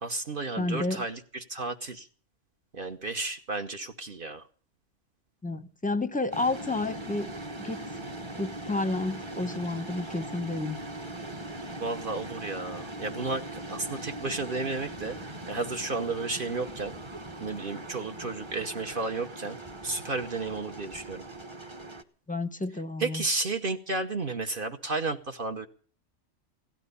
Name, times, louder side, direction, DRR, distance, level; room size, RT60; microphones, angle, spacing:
voice 1, 0.0-2.1 2.7-4.4 11.8-15.2 15.5-16.9 17.4-19.6 19.8-21.2 23.0-25.7, right 3 dB, 50° right, 1.1 m, -32 dB
voice 2, 0.6-1.0 5.4-7.3 7.6-7.9 8.4-10.8 22.3-23.2, left 2 dB, 10° left, 0.7 m, -30 dB
sound 1, 6.3-22.0, right 1 dB, 25° right, 1.0 m, -40 dB
16.5 x 12.0 x 6.8 m
omnidirectional pair, 1.3 m